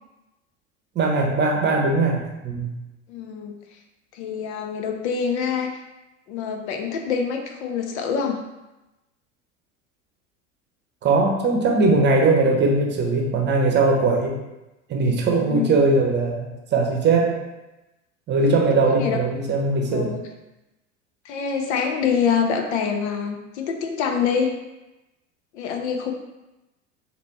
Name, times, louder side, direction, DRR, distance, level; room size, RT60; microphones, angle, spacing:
voice 1, 0.9-2.7 11.0-14.4 14.9-17.4 18.3-20.1, right 3 dB, 30° right, 1 dB, 0.8 m, -20 dB
voice 2, 3.1-3.6 4.1-5.7 6.3-8.4 15.3-15.8 18.9-19.2 19.9-20.2 21.2-24.5 25.5-26.1, left 6 dB, 60° left, 4 dB, 0.7 m, -25 dB
4.1 x 3.0 x 3.1 m, 1.0 s
figure-of-eight pair, 80°, 38 cm